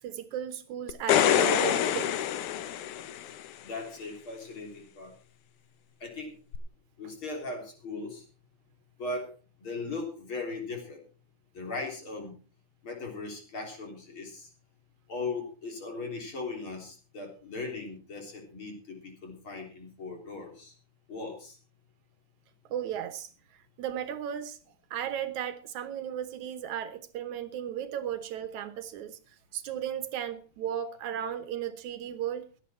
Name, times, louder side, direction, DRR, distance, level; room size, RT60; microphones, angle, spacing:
voice 1, 0.0-2.1 22.7-23.3 23.8-24.6 24.9-29.2 29.5-32.5, right 10 dB, 75° right, 11 dB, 2.4 m, -35 dB
sound 1, 0.9-3.5 6.5-6.6, left 10 dB, 80° left, 2.4 m, -26 dB
voice 2, 3.6-5.1 6.0-6.3 7.0-8.2 9.0-9.3 9.6-11.0 11.5-12.3 12.8-14.5 15.1-20.7 21.1-21.6, left 3 dB, 40° left, 2 dB, 4.3 m, -38 dB
16.5 x 11.0 x 4.4 m, 0.37 s
omnidirectional pair, 3.5 m